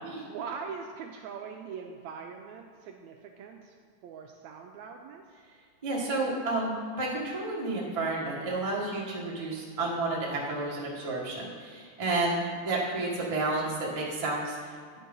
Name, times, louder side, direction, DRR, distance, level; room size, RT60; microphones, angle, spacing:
voice 1, 0.2-3.7 4.0-5.2 12.2-12.5, right 6 dB, 80° right, 2 dB, 1.6 m, -42 dB
voice 2, 5.8-14.7, right 2 dB, 45° right, -5 dB, 0.4 m, -31 dB
10.0 x 4.7 x 5.3 m, 2.1 s
omnidirectional pair, 3.6 m